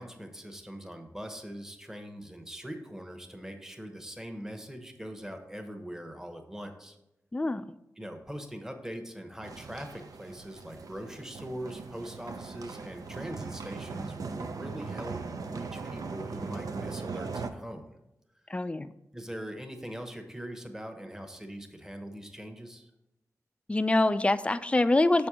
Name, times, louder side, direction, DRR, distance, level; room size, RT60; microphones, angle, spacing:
voice 1, 0.0-7.0 8.0-15.2 15.5-17.9 19.1-22.9, equal, 10° right, 5 dB, 0.9 m, -42 dB
voice 2, 7.3-7.6 18.5-18.9 23.7-25.3, left 2 dB, 20° left, 13 dB, 0.3 m, -25 dB
sound 1, 9.4-17.5, right 4 dB, 75° right, 0.5 m, -39 dB
6.9 x 4.3 x 4.8 m, 0.90 s
wide cardioid pair, 70°, 6 cm